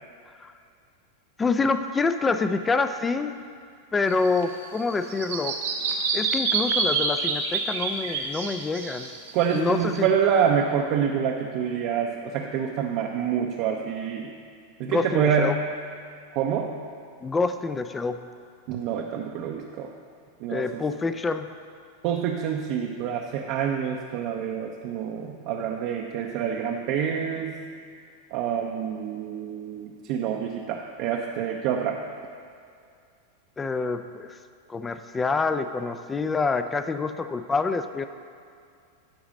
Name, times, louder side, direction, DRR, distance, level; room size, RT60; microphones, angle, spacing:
voice 1, 1.4-3.4 3.9-5.6 6.1-9.1 9.5-10.1 14.8-15.5 17.2-18.2 20.5-21.5 33.6-34.4 34.7-38.1, left 4 dB, 15° left, 10 dB, 0.3 m, -26 dB
Bird vocalization bird call bird song, 4.1-10.0, right 4 dB, 80° right, 1.0 m, -28 dB
voice 2, 9.3-14.3 14.8-15.6 16.3-16.7 18.7-19.9 20.4-20.8 22.0-27.6 28.3-32.0, right 7 dB, 50° right, 0 dB, 0.6 m, -27 dB
10.5 x 4.0 x 5.1 m, 2.3 s
hypercardioid pair, 125°, 0 cm